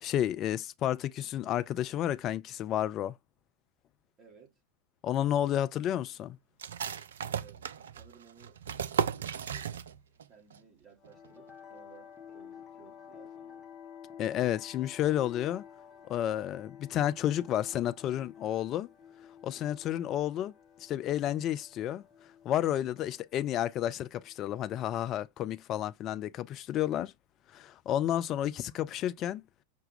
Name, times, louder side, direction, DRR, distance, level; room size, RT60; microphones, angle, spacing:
voice 1, 0.0-3.2 5.0-6.4 14.2-15.6 16.1-18.9 19.4-20.5 20.8-22.0 22.4-27.1 27.5-29.4, left 11 dB, 35° left, 0.4 m, -31 dB
voice 2, 4.2-4.6 7.3-8.6 9.0-9.7 10.3-13.7, right 6 dB, 25° right, 1.7 m, -58 dB
sound 1, 6.6-10.2 10.5-10.6 11.0-11.5, right 8 dB, 65° right, 0.3 m, -35 dB
sound 2, 11.0-25.1, left 8 dB, 15° left, 1.0 m, -51 dB
5.7 x 2.2 x 3.3 m
figure-of-eight pair, 90°, 0 cm